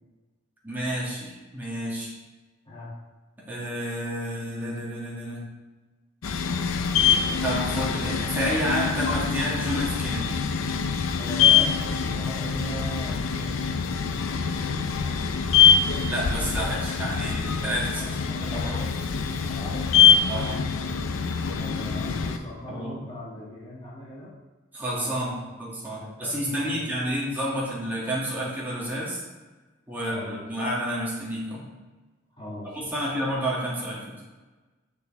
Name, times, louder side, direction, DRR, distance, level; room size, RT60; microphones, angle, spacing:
voice 1, 0.6-2.1 3.5-5.5 7.4-10.4 16.1-18.8 20.3-20.5 22.7-23.0 24.7-29.2 29.9-31.7 32.7-34.0, equal, 10° right, -8 dB, 2.3 m, -30 dB
sound 1, 6.2-22.4, left 7 dB, 80° left, 0.6 m, -24 dB
voice 2, 11.2-14.9 18.0-20.6 21.6-24.3 24.9-25.5 25.8-27.1 30.0-30.4 32.4-33.1, left 1 dB, 25° left, -8 dB, 2.3 m, -39 dB
7.7 x 6.5 x 3.5 m, 1.3 s
head